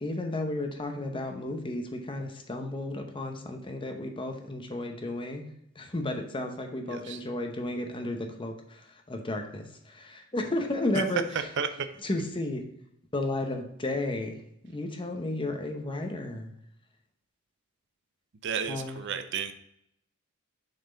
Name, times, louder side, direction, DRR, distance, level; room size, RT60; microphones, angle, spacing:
voice 1, 0.0-5.4 5.8-11.2 12.0-12.6 13.1-14.4 14.6-16.5 18.7-19.0, left 2 dB, 25° left, 4 dB, 0.8 m, -33 dB
voice 2, 6.9-7.2 11.6-11.9 18.4-19.5, right 6 dB, 60° right, 9 dB, 0.5 m, -32 dB
6.5 x 4.2 x 3.9 m, 0.76 s
head